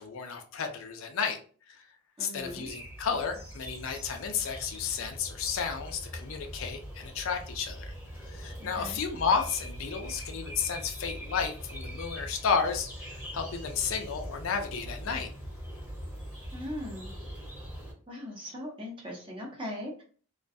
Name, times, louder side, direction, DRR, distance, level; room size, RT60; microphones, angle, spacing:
voice 1, 0.0-1.4 2.2-7.9 8.3-15.3, left 6 dB, 60° left, 5 dB, 0.4 m, -32 dB
voice 2, 2.2-2.7 8.6-9.0 16.5-17.1 18.1-20.0, left 1 dB, 25° right, -1 dB, 0.7 m, -39 dB
sound 1, 2.4-17.9, equal, 5° right, 1.1 m, -42 dB
2.4 x 2.2 x 2.6 m, 0.42 s
head